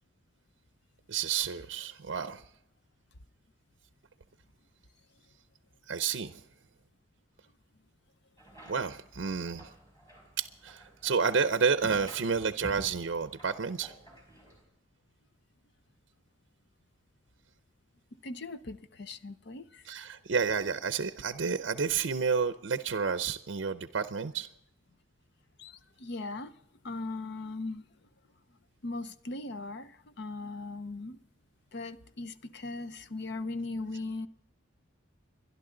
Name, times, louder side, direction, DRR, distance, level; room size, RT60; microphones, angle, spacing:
voice 1, 1.1-2.4 5.9-6.4 8.7-9.7 10.4-13.9 19.9-24.5, right 5 dB, 65° right, 11 dB, 0.5 m, -30 dB
sound 1, 8.4-14.6, right 1 dB, 15° left, 5.3 m, -50 dB
voice 2, 18.2-19.8 25.6-26.5 26.8-27.8 28.8-31.2 31.7-34.3, left 2 dB, 60° left, 13 dB, 0.7 m, -39 dB
29.5 x 11.5 x 3.8 m, 0.78 s
head